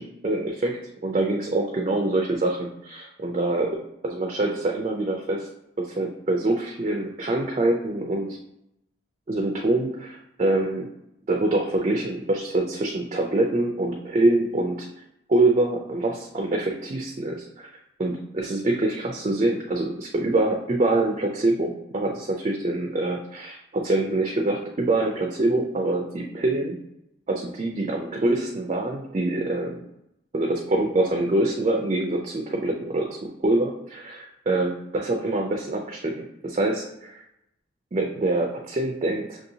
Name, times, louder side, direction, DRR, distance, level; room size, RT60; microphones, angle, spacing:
voice 1, 0.0-3.8 4.0-5.5 5.8-8.4 9.3-10.9 11.3-14.9 15.3-17.7 18.0-26.8 27.3-29.8 30.3-37.2 37.9-39.4, right 2 dB, 35° right, 1 dB, 0.3 m, -25 dB
5.9 x 2.7 x 2.7 m, 0.83 s
head